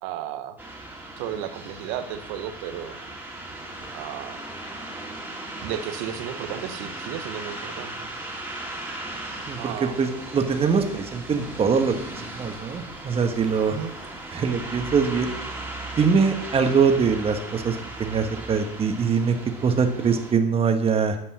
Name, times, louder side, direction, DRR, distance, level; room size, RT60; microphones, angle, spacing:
voice 1, 0.0-0.6 1.2-3.0 3.9-4.5 5.6-8.1 9.6-10.0 13.7-13.9, right 10 dB, 70° right, 9 dB, 1.1 m, -34 dB
sound 1, 0.6-20.3, right 2 dB, 10° right, 2.6 m, -37 dB
voice 2, 9.5-11.9 12.3-13.8 14.3-15.3 16.0-19.3 19.6-21.2, right 5 dB, 30° right, 6 dB, 1.5 m, -23 dB
10.5 x 5.4 x 6.2 m, 0.76 s
supercardioid pair, 90°, 18 cm